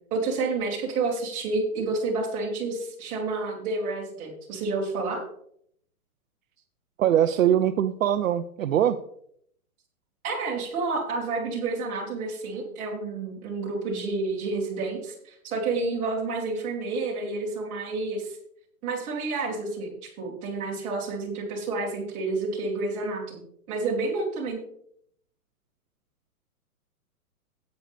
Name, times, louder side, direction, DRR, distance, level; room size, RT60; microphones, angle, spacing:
voice 1, 0.1-5.2 10.2-18.4 18.8-23.4 23.7-24.6, right 3 dB, 15° right, -5 dB, 2.5 m, -29 dB
voice 2, 7.0-9.0, right 10 dB, 60° right, 10 dB, 0.6 m, -22 dB
13.5 x 9.1 x 3.4 m, 0.68 s
hypercardioid pair, 175°, 45 cm